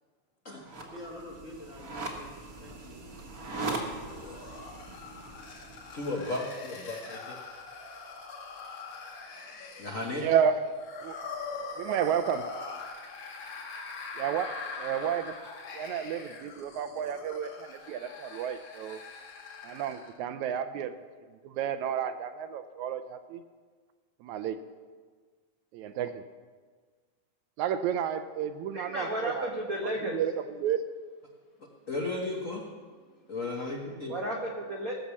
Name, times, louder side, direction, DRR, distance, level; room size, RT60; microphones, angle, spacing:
voice 1, 0.4-2.3 2.6-3.0, left 1 dB, 35° left, -2 dB, 1.4 m, -46 dB
sound 1, 0.6-6.5, right 2 dB, 40° right, 1.3 m, -40 dB
sound 2, 3.5-20.2, left 4 dB, 55° left, 3.0 m, -43 dB
voice 2, 5.9-7.4 9.8-10.3 31.9-32.6 33.3-34.1, left 2 dB, 75° left, -1 dB, 0.7 m, -34 dB
voice 3, 10.2-10.6 11.0-11.2 11.8-12.5 14.2-14.5 14.8-15.3 15.7-19.0 19.6-20.9 21.4-23.4 24.2-24.6 25.7-26.2 27.6-29.5 30.1-30.3 30.6-30.8, right 8 dB, 80° right, 10 dB, 1.8 m, -31 dB
voice 4, 28.7-30.2 34.1-35.0, equal, 60° right, 0 dB, 0.8 m, -33 dB
17.5 x 6.7 x 7.2 m, 1.5 s
omnidirectional pair, 3.6 m